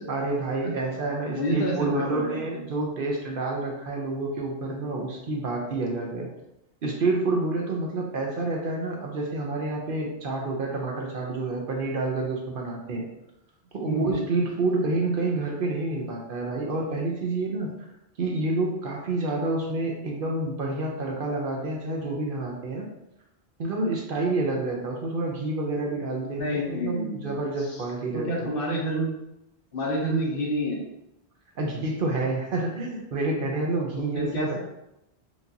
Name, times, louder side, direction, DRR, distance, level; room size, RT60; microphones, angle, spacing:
voice 1, 0.1-6.3 6.8-13.1 13.7-17.7 18.2-22.8 23.6-28.5 31.6-34.6, right 2 dB, 60° right, -1 dB, 0.8 m, -28 dB
voice 2, 1.4-2.3 13.9-14.2 26.2-27.3 28.1-29.1 29.7-30.8 34.1-34.6, equal, 60° left, -2 dB, 1.0 m, -28 dB
4.5 x 2.5 x 2.7 m, 0.86 s
omnidirectional pair, 1.1 m